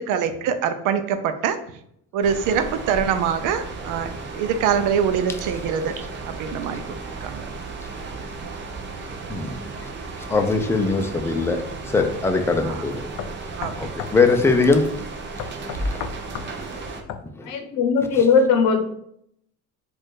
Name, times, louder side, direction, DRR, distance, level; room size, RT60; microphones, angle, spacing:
voice 1, 0.1-1.6 2.1-6.8 7.2-7.5 12.6-12.8 13.6-13.7, right 7 dB, 80° right, 9 dB, 0.6 m, -24 dB
sound 1, 2.2-17.0, right 3 dB, 35° right, 0.7 m, -34 dB
voice 2, 9.3-9.9 10.2-13.0 13.8-14.9 15.8-16.1 16.6-16.8 17.4-17.5 18.1-18.2, left 3 dB, 10° left, 4 dB, 0.4 m, -22 dB
sound 2, 12.0-12.1 12.7-12.8 13.2-14.2 14.5-14.6 15.4-16.5 17.1-17.3, left 9 dB, 65° left, 0.5 m, -34 dB
voice 3, 17.5-18.8, left 5 dB, 90° left, 5 dB, 0.9 m, -18 dB
4.4 x 2.5 x 4.6 m, 0.71 s
cardioid pair, 135°, 31 cm